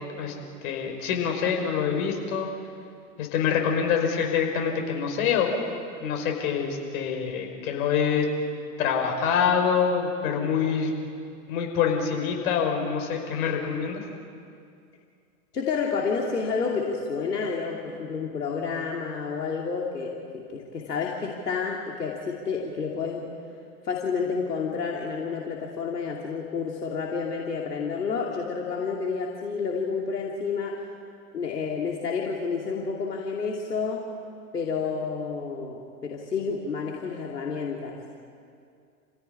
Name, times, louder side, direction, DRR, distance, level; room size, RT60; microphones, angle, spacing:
voice 1, 0.6-2.5 3.2-5.5 6.0-8.3 8.8-10.9 11.5-14.0, left 7 dB, 60° left, 3 dB, 5.4 m, -25 dB
voice 2, 15.5-23.3 23.8-30.8 31.3-34.0 34.5-38.0, left 5 dB, 85° left, -1 dB, 2.7 m, -30 dB
28.5 x 16.0 x 9.8 m, 2.4 s
hypercardioid pair, 100°, 46 cm